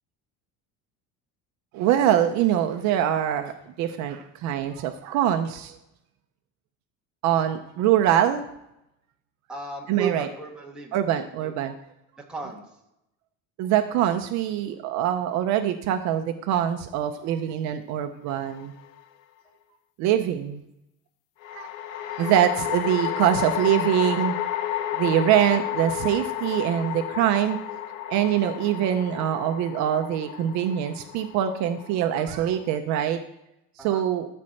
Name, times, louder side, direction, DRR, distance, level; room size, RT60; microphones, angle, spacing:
voice 1, 1.7-5.8 7.2-8.5 9.9-10.3 10.9-11.8 13.6-18.7 20.0-20.6 21.5-24.3 24.9-27.6 28.1-33.2 33.8-34.3, right 10 dB, 50° right, 7 dB, 0.7 m, -24 dB
voice 2, 9.5-11.1 11.4-11.6 12.2-12.7 33.8-34.0, right 5 dB, ahead, -2 dB, 1.2 m, -34 dB
sound 1, 18.3-19.0 21.4-32.8, left 11 dB, 60° left, 0.6 m, -32 dB
13.0 x 4.3 x 6.4 m, 0.85 s
cardioid pair, 180°, 35 cm